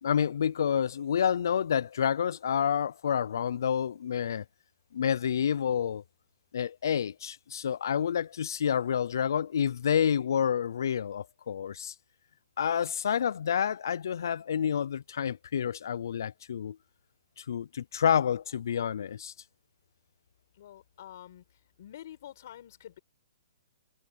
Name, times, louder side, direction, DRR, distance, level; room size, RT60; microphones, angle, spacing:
voice 1, 0.0-4.4 4.9-6.0 6.5-11.9 12.6-16.8 17.4-19.3, left 8 dB, 65° left, 0.4 m, -29 dB
voice 2, 20.5-21.4 21.8-23.0, left 11 dB, 45° left, 5.2 m, -47 dB
hypercardioid pair, 170°, 2 cm